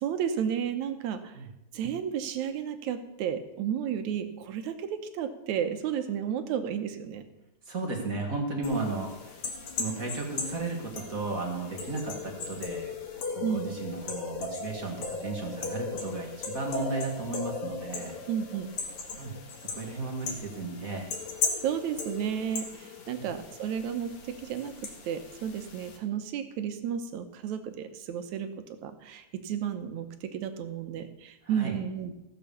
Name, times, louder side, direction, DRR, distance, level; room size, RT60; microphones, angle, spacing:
voice 1, 0.0-1.4 1.7-7.2 13.4-13.7 18.3-18.7 21.6-32.1, right 8 dB, 80° right, 8 dB, 2.3 m, -32 dB
voice 2, 7.7-9.4 9.8-12.9 13.3-18.2 19.2-21.1 23.1-23.3 31.4-31.8, right 3 dB, 35° right, 1 dB, 1.9 m, -34 dB
sound 1, 8.6-26.0, left 4 dB, 70° left, 3.2 m, -37 dB
15.5 x 6.9 x 7.0 m, 0.95 s
omnidirectional pair, 3.3 m